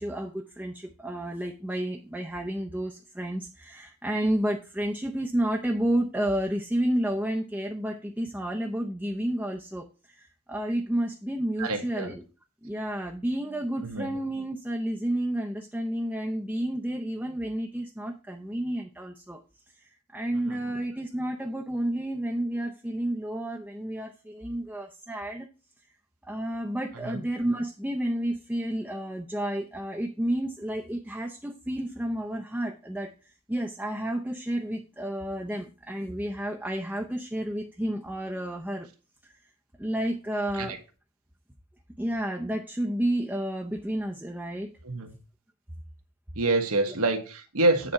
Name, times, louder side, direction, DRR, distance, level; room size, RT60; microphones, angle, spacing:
voice 1, 0.0-12.2 12.6-19.4 19.8-19.9 20.1-25.5 26.2-33.1 33.5-38.9 39.8-40.7 42.0-44.7 46.9-47.0, right 1 dB, 5° right, 1 dB, 0.6 m, -31 dB
voice 2, 11.6-12.1 13.8-14.2 20.3-20.7 27.0-27.2 40.5-40.7 44.8-45.1 46.3-47.9, right 2 dB, 80° right, 5 dB, 1.5 m, -27 dB
8.9 x 4.2 x 5.7 m, 0.34 s
head